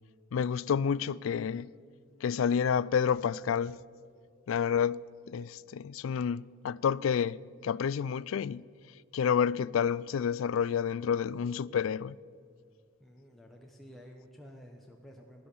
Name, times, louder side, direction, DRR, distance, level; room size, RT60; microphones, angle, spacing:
voice 1, 0.3-1.7 2.2-3.8 4.5-8.7 9.1-12.2, left 7 dB, 80° left, 0.3 m, -29 dB
voice 2, 13.0-15.5, equal, ahead, 0.9 m, -52 dB
16.5 x 11.5 x 7.0 m
head